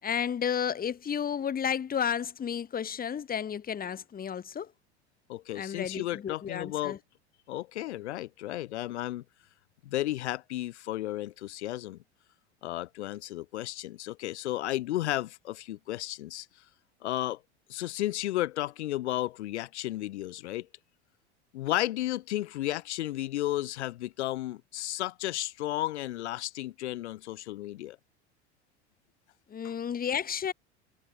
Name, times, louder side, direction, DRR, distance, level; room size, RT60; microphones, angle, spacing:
voice 1, 0.0-4.7 5.5-7.0 29.5-30.5, left 8 dB, 25° left, 1.6 m, -32 dB
voice 2, 5.3-7.0 7.5-9.2 9.8-12.0 12.6-16.5 17.0-17.4 17.7-20.7 21.5-28.0 29.6-29.7, left 15 dB, 75° left, 1.4 m, -33 dB
hypercardioid pair, 85°, 34 cm